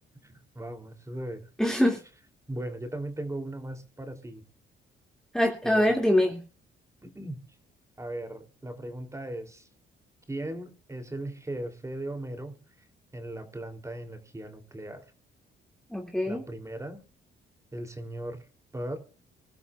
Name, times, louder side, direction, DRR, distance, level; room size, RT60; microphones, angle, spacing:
voice 1, 0.2-1.5 2.5-4.4 5.6-5.9 7.0-7.4 8.0-9.7 10.3-12.9 13.1-15.1 16.3-17.0 17.7-18.5 18.7-19.0, right 1 dB, 15° right, 6 dB, 3.0 m, -38 dB
voice 2, 1.6-2.0 5.3-6.4 15.9-16.4, left 1 dB, 5° left, 1 dB, 2.3 m, -24 dB
25.0 x 12.5 x 2.4 m, 0.36 s
cardioid pair, 90°, 20 cm